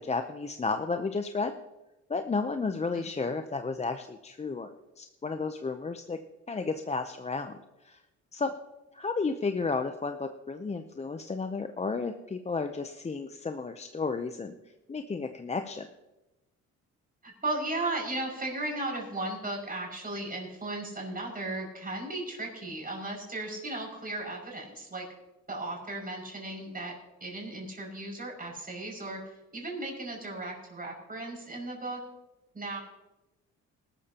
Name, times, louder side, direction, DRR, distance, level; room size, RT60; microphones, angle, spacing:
voice 1, 0.0-1.5 2.1-4.7 5.0-6.2 6.5-7.6 7.8-8.0 8.3-8.5 8.9-14.5 14.9-15.9, left 4 dB, 20° left, 7 dB, 0.7 m, -32 dB
voice 2, 17.2-25.1 25.5-29.2 29.5-32.0 32.5-32.8, right 2 dB, 30° right, 0 dB, 6.1 m, -36 dB
20.0 x 13.0 x 2.9 m, 1.0 s
cardioid pair, 90°, 30 cm